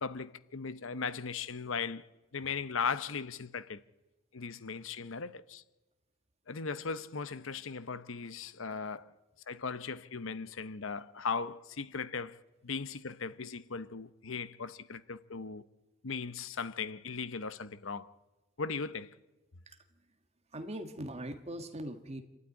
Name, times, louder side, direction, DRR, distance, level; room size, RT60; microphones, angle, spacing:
voice 1, 0.0-2.1 2.3-3.8 4.3-5.6 6.5-9.1 9.5-15.6 16.0-18.1 18.6-19.1, left 5 dB, 65° left, 0.8 m, -38 dB
voice 2, 20.5-22.2, right 1 dB, 30° right, 1.6 m, -40 dB
27.0 x 12.5 x 9.6 m
head